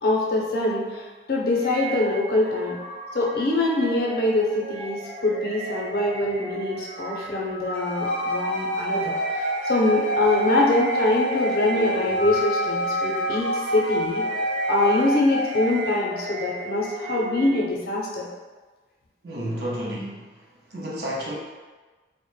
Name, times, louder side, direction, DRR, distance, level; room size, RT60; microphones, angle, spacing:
voice 1, 0.0-2.8 3.1-14.2 14.7-18.3, left 2 dB, 55° left, -3 dB, 0.5 m, -24 dB
sound 1, 1.6-17.8, equal, 45° right, 0.8 m, -34 dB
sound 2, 7.7-16.0, equal, 5° left, 0.5 m, -28 dB
voice 2, 19.2-20.3 20.7-21.4, equal, 70° right, -4 dB, 0.6 m, -31 dB
2.1 x 2.0 x 3.0 m, 1.3 s
head